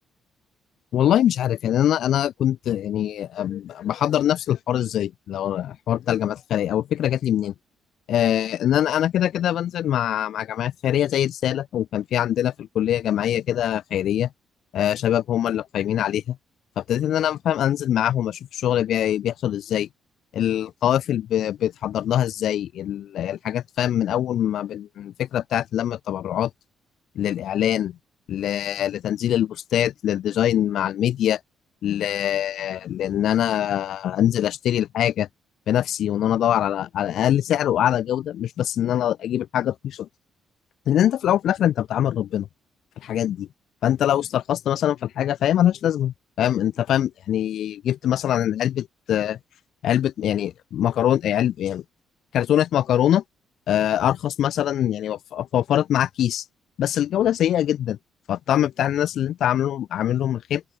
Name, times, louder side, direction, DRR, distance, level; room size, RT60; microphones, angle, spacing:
voice 1, 0.9-7.5 8.1-14.3 14.7-16.4 16.8-19.9 20.3-26.5 27.2-28.0 28.3-31.4 31.8-35.3 35.7-40.1 40.9-42.5 43.0-43.5 43.8-49.4 49.8-51.8 52.3-53.2 53.7-56.4 56.8-58.0 58.3-60.6, left 11 dB, 70° left, 3.9 m, -23 dB
open air
cardioid pair, 90°, 0 cm